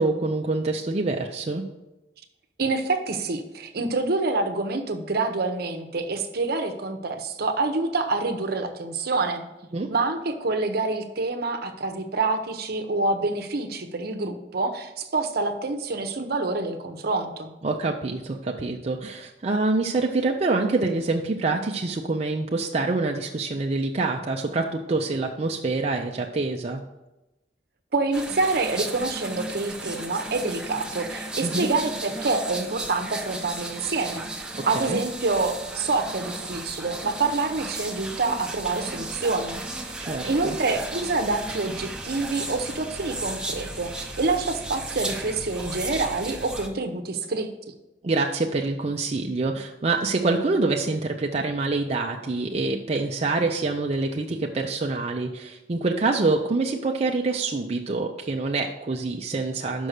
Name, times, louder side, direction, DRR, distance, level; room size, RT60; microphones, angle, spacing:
voice 1, 0.0-1.7 9.7-9.9 17.6-26.8 31.4-31.7 34.5-35.0 40.0-40.6 48.0-59.9, right 3 dB, 35° right, 1 dB, 0.5 m, -26 dB
voice 2, 2.6-9.5 9.9-17.5 27.9-34.2 34.6-39.6 40.3-47.5, right 3 dB, 60° right, 6 dB, 0.8 m, -27 dB
sound 1, 28.1-46.7, right 2 dB, 5° right, 0.9 m, -35 dB
6.3 x 5.4 x 6.4 m, 1.0 s
head